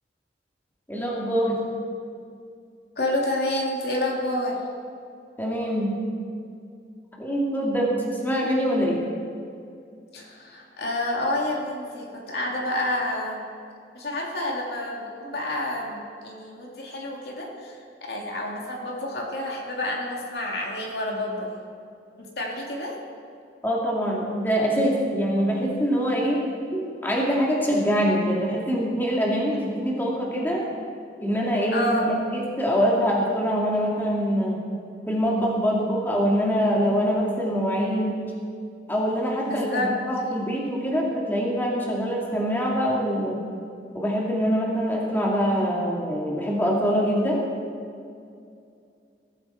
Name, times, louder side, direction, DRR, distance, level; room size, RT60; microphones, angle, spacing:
voice 1, 0.9-1.6 5.4-5.9 7.2-9.0 23.6-26.4 26.7-30.6 31.2-34.6 35.1-38.1 38.9-43.4 43.9-47.4, equal, 10° left, -3 dB, 2.3 m, -24 dB
voice 2, 3.0-4.6 10.1-13.4 13.9-21.5 22.2-23.0 31.7-32.1 39.5-39.9, left 1 dB, 60° left, -1 dB, 2.7 m, -29 dB
21.5 x 14.0 x 4.4 m, 2.4 s
head